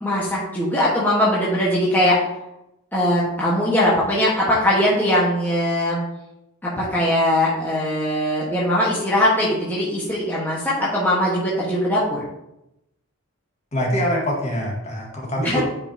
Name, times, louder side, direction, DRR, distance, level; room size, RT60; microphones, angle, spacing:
voice 1, 0.0-2.2 2.9-6.0 6.6-12.2 15.4-15.6, left 1 dB, 10° left, -7 dB, 1.4 m, -20 dB
voice 2, 13.7-15.6, equal, 30° left, -2 dB, 1.8 m, -24 dB
10.5 x 5.4 x 2.9 m, 0.86 s
head